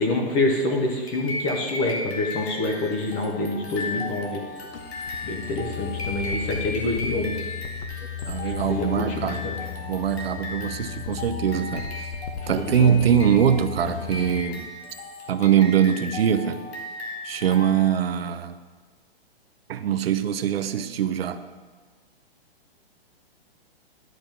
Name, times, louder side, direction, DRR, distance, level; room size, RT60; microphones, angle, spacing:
voice 1, 0.0-4.4 5.2-7.4 8.4-9.6 12.5-13.0, left 2 dB, 15° left, 2 dB, 0.6 m, -27 dB
sound 1, 1.1-18.1, left 2 dB, 85° left, 2.1 m, -36 dB
sound 2, 4.5-14.4, left 7 dB, 65° left, 1.1 m, -35 dB
voice 2, 8.3-9.4 9.9-12.1 12.5-14.7 15.3-16.6 17.2-18.6 19.7-21.4, right 8 dB, 70° right, 11 dB, 0.7 m, -22 dB
11.0 x 5.2 x 5.8 m, 1.5 s
hypercardioid pair, 165°, 31 cm